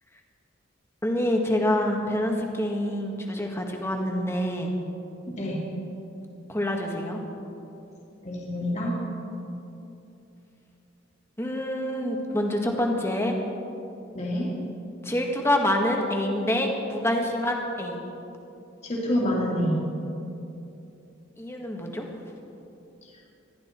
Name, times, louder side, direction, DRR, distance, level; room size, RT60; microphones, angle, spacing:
voice 1, 1.0-4.7 6.5-7.2 11.4-13.4 15.0-18.0 21.4-22.1, left 1 dB, 15° left, 1 dB, 1.6 m, -26 dB
voice 2, 5.3-5.6 8.2-8.9 14.1-14.5 18.8-19.9, equal, 35° left, -4 dB, 2.6 m, -27 dB
21.5 x 14.0 x 4.5 m, 2.8 s
head